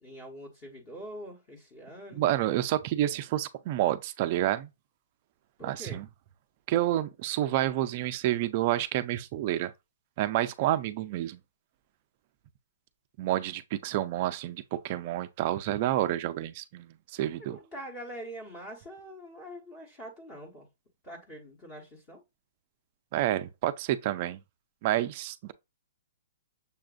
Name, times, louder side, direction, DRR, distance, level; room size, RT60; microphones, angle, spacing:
voice 1, 0.0-2.2 5.6-6.0 17.5-20.7 21.0-22.2, equal, 20° left, 1.1 m, -44 dB
voice 2, 2.2-4.7 5.6-6.0 6.7-9.7 10.2-11.4 13.2-17.6 23.1-24.4 24.8-25.5, right 13 dB, 30° right, 0.3 m, -29 dB
6.8 x 2.5 x 2.4 m
hypercardioid pair, 170°, 0 cm